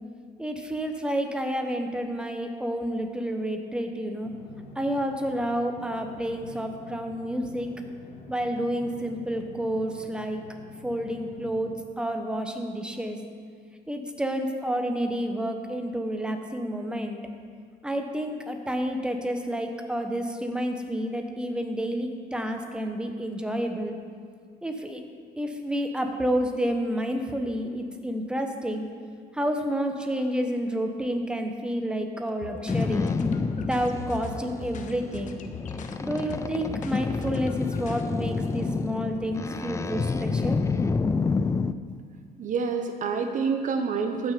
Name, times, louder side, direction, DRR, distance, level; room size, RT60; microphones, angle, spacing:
voice 1, 0.4-4.3 4.8-7.7 8.3-10.4 10.8-13.2 13.9-17.2 17.8-23.9 24.6-25.0 25.4-28.8 29.3-33.1 33.7-35.4 36.0-40.6, equal, 5° right, 4 dB, 1.1 m, -30 dB
sound 1, 4.2-11.7, left 2 dB, 85° left, 1.5 m, -47 dB
sound 2, 32.2-38.0, left 5 dB, 50° left, 0.9 m, -41 dB
Boat Water vehicle, 32.7-41.7, left 4 dB, 20° left, 0.4 m, -29 dB
voice 2, 42.4-44.3, right 5 dB, 50° right, 5 dB, 0.9 m, -27 dB
14.5 x 6.3 x 5.1 m, 2.1 s
cardioid pair, 110°, 17 cm